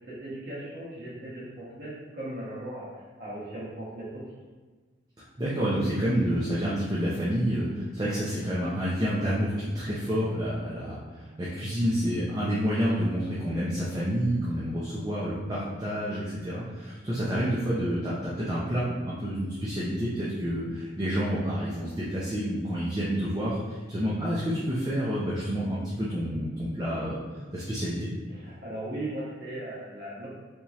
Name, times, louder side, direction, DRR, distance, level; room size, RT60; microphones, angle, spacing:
voice 1, 0.1-4.2 28.3-30.3, right 1 dB, 55° right, -8 dB, 1.3 m, -38 dB
voice 2, 5.4-27.2 27.5-28.1, equal, 20° right, -8 dB, 0.5 m, -29 dB
3.5 x 2.8 x 3.0 m, 1.4 s
head